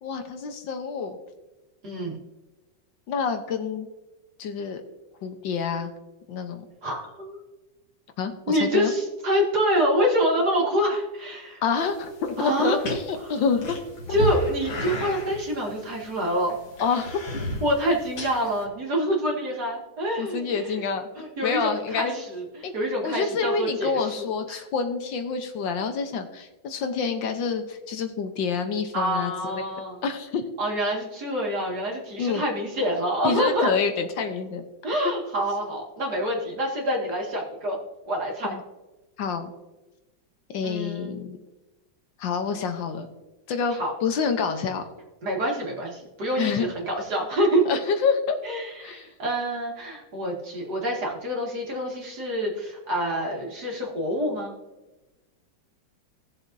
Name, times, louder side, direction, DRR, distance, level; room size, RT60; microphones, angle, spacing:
voice 1, 0.0-1.2 3.1-3.9 4.4-4.8 5.2-5.9 6.3-6.6 8.2-8.9 11.6-13.8 16.8-17.2 20.2-21.1 21.4-22.2 22.6-22.7 23.0-29.7 30.0-30.4 32.2-32.4 33.2-34.6 38.5-38.6 39.2-39.5 40.5-41.4 42.2-43.1 43.5-44.9 46.3-46.7 47.6-48.4 48.8-49.1, left 5 dB, 75° left, 6 dB, 1.6 m, -27 dB
voice 2, 1.8-2.2 6.8-7.4 8.5-11.6 12.4-12.8 14.1-16.6 17.6-20.8 21.2-24.6 28.9-30.0 30.6-33.7 34.8-37.8 38.1-38.6 40.6-41.3 43.8-43.9 45.2-47.6 48.4-54.5, equal, 55° right, -1 dB, 2.5 m, -26 dB
sound 1, 11.8-18.6, equal, 90° left, 2.7 m, -34 dB
18.5 x 7.2 x 2.7 m, 1.1 s
omnidirectional pair, 2.1 m